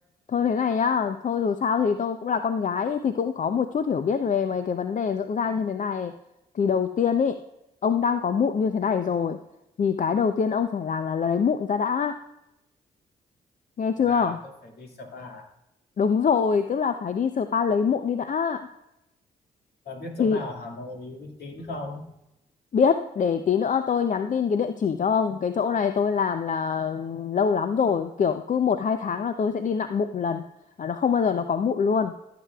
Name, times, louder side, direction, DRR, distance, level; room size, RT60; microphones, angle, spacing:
voice 1, 0.3-6.1 6.5-7.4 7.8-9.4 9.8-12.2 13.8-14.4 16.0-18.7 20.2-20.4 22.7-30.4 30.8-32.1, left 6 dB, 45° left, 9 dB, 0.6 m, -24 dB
voice 2, 14.0-15.5 19.9-22.1, left 2 dB, 60° left, 1 dB, 2.0 m, -38 dB
14.0 x 7.7 x 2.3 m, 0.88 s
hypercardioid pair, 40°, 18 cm